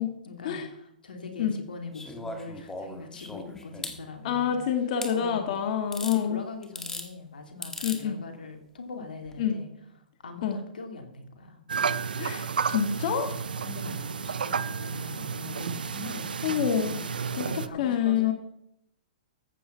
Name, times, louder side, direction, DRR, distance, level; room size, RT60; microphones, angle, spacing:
voice 1, 0.2-4.6 5.1-5.6 6.0-9.7 10.2-11.7 13.6-17.0 17.3-18.3, left 3 dB, 85° left, 5 dB, 2.8 m, -42 dB
sound 1, 1.9-4.0 5.0-5.1 5.9-6.2 6.6-7.1 7.6-8.0 9.2-9.3, left 2 dB, 10° left, 2.0 m, -38 dB
voice 2, 4.2-6.4 7.8-8.2 9.4-9.6 10.4-10.6 12.2-13.3 16.4-17.0 17.4-18.3, left 8 dB, 55° left, 5 dB, 1.8 m, -27 dB
sound 2, 11.7-17.7, right 6 dB, 85° right, 0.8 m, -32 dB
14.5 x 8.7 x 5.7 m, 0.75 s
hypercardioid pair, 125°, 5 cm